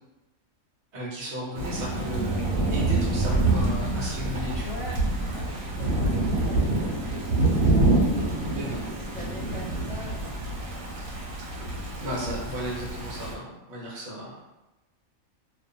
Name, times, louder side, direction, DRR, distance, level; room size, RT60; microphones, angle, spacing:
voice 1, 0.9-2.4 2.7-4.8 8.5-8.8 12.0-14.4, left 1 dB, 60° right, -4 dB, 0.9 m, -34 dB
Thunder / Rain, 1.5-13.3, right 2 dB, 85° right, 1.0 m, -26 dB
voice 2, 4.6-5.0 5.2-6.2 6.4-6.9 8.5-10.4 11.7-12.1, left 2 dB, 80° left, -3 dB, 1.1 m, -42 dB
2.4 x 2.2 x 2.5 m, 1.0 s
omnidirectional pair, 1.4 m